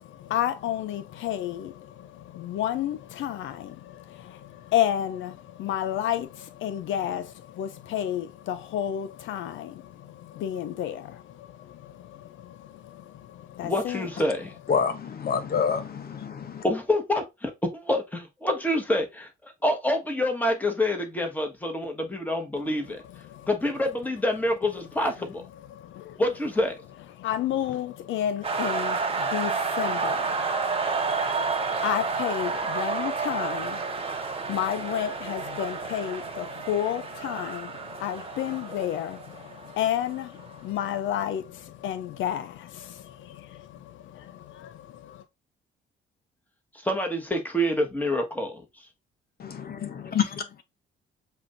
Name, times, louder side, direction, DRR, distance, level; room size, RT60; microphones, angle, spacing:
voice 1, 0.0-14.0 23.3-23.5 25.7-26.2 27.2-45.2, left 11 dB, 75° left, 0.5 m, -32 dB
voice 2, 13.6-14.5 16.6-23.0 23.5-25.4 26.2-26.8 46.8-48.6, left 1 dB, 10° left, 1.4 m, -27 dB
voice 3, 14.7-16.6 49.4-50.2, left 7 dB, 50° left, 0.9 m, -27 dB
sound 1, 28.4-40.1, right 4 dB, 30° right, 1.0 m, -30 dB
7.5 x 2.6 x 2.5 m
cardioid pair, 90°, 20 cm